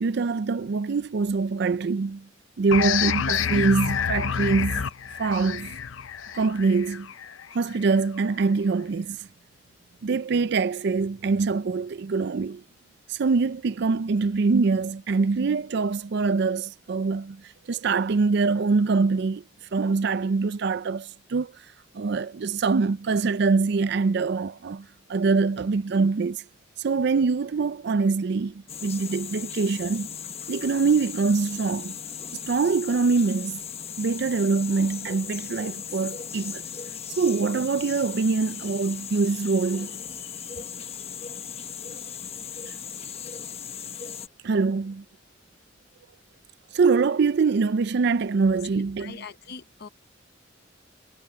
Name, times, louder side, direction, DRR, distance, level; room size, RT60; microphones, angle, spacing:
voice 1, 0.0-2.3 2.6-4.9 5.2-5.7 6.3-7.1 7.5-9.3 10.0-12.6 13.1-17.4 17.7-19.4 19.7-21.5 21.9-26.4 26.8-30.1 30.5-31.9 32.5-33.6 34.0-36.6 37.2-40.0 44.4-45.0 46.7-49.2, right 4 dB, 55° right, 0.4 m, -24 dB
sound 1, 2.7-8.0, left 8 dB, 80° left, 0.6 m, -28 dB
sound 2, 28.7-44.3, left 7 dB, 30° left, 1.1 m, -37 dB
voice 2, 48.5-49.9, left 5 dB, 55° left, 0.8 m, -42 dB
head